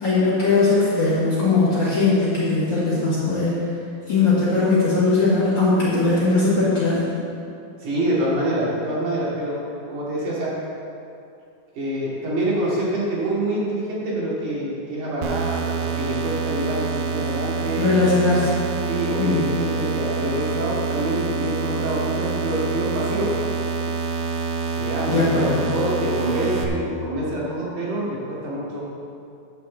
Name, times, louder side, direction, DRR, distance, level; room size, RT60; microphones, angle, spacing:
voice 1, 0.0-3.6 4.1-7.0 17.8-18.6 19.2-19.5 25.1-25.7, left 3 dB, 40° left, -9 dB, 2.3 m, -19 dB
voice 2, 7.8-9.6 9.9-10.5 11.8-17.9 18.9-23.3 24.8-28.8, right 1 dB, 70° right, -7 dB, 3.9 m, -26 dB
sound 1, 15.2-26.6, right 4 dB, 90° right, 1.2 m, -26 dB
9.6 x 6.2 x 7.4 m, 2.6 s
omnidirectional pair, 3.7 m